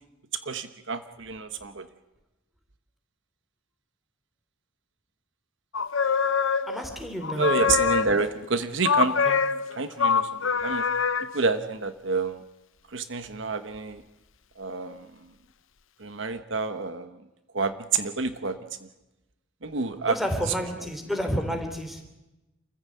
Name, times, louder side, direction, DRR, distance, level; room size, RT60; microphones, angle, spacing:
voice 1, 0.4-1.9 7.4-9.1 9.7-10.8 11.3-12.4 12.9-14.0 14.6-15.1 16.0-17.1 17.5-18.6 19.6-20.2 20.5-20.9, right 4 dB, 60° right, 10 dB, 1.1 m, -28 dB
sound 1, 5.7-7.0 7.2-8.4 8.8-11.4, left 6 dB, 70° left, 0.9 m, -25 dB
voice 2, 6.7-7.4 9.2-9.4 20.1-22.0, equal, ahead, 5 dB, 3.2 m, -30 dB
27.5 x 15.0 x 8.5 m, 1.0 s
head